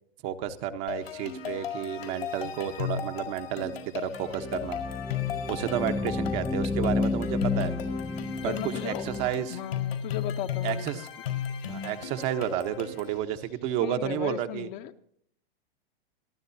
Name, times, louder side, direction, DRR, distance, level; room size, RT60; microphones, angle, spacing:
voice 1, 0.2-4.8 5.5-7.7 8.4-9.6 10.6-11.1 11.7-14.7, right 10 dB, 45° right, 7 dB, 1.2 m, -31 dB
sound 1, 0.9-13.2, left 8 dB, 85° left, 4.7 m, -36 dB
sound 2, 3.7-3.8 4.1-9.3, left 3 dB, 5° left, 0.8 m, -31 dB
voice 2, 8.4-9.2 9.5-11.0 13.8-15.0, left 11 dB, 50° left, 7 dB, 1.2 m, -36 dB
26.5 x 11.5 x 2.8 m, 0.69 s
hypercardioid pair, 125°, 29 cm